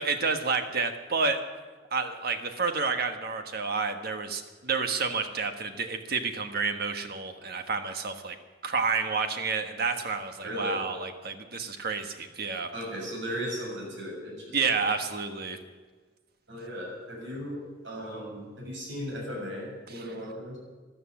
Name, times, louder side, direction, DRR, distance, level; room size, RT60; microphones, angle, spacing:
voice 1, 0.0-1.4 1.9-8.4 8.6-12.7 14.5-15.6 19.9-20.1, right 4 dB, 55° right, 7 dB, 1.3 m, -30 dB
voice 2, 10.4-10.8 12.7-14.8 16.5-17.6 17.8-20.6, equal, 70° right, -2 dB, 7.0 m, -36 dB
13.0 x 12.5 x 8.6 m, 1.4 s
head